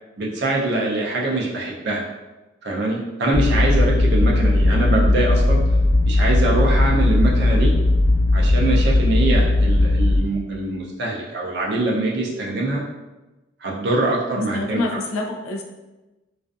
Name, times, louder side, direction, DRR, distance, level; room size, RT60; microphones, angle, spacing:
voice 1, 0.2-2.0 2.6-5.6 6.0-7.7 8.3-12.8 13.6-15.0, right 2 dB, 55° right, -3 dB, 0.4 m, -23 dB
sound 1, 3.3-10.2, left 2 dB, 85° right, 0.8 m, -17 dB
voice 2, 14.5-15.6, left 2 dB, 85° left, 1 dB, 0.4 m, -27 dB
2.4 x 2.4 x 2.3 m, 1.1 s
head